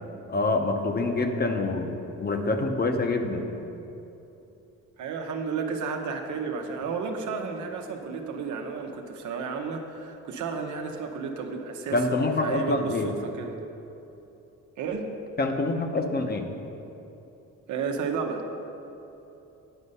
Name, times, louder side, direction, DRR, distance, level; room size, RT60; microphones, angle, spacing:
voice 1, 0.3-1.9 2.2-3.5 11.9-13.1 15.4-16.5, left 2 dB, 30° left, 5 dB, 0.9 m, -26 dB
voice 2, 5.0-12.0 12.4-13.6 14.8-15.1 17.7-18.4, right 5 dB, 75° right, 3 dB, 1.0 m, -32 dB
10.0 x 5.3 x 5.5 m, 3.0 s
cardioid pair, 90°, 30 cm